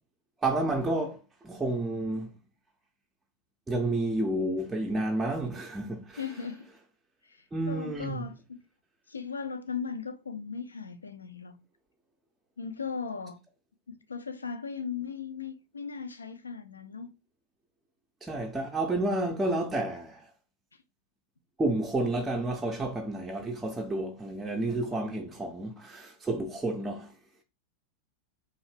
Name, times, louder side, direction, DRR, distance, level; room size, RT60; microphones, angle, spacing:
voice 1, 0.4-1.2 1.4-2.3 3.7-6.2 7.5-8.3 18.2-20.3 21.6-27.1, right 2 dB, 10° right, 0.4 m, -30 dB
voice 2, 6.2-6.7 7.2-8.6 9.1-11.5 12.6-13.4 13.9-17.1, left 6 dB, 75° left, 0.4 m, -37 dB
2.7 x 2.5 x 3.2 m
figure-of-eight pair, 90°, 0 cm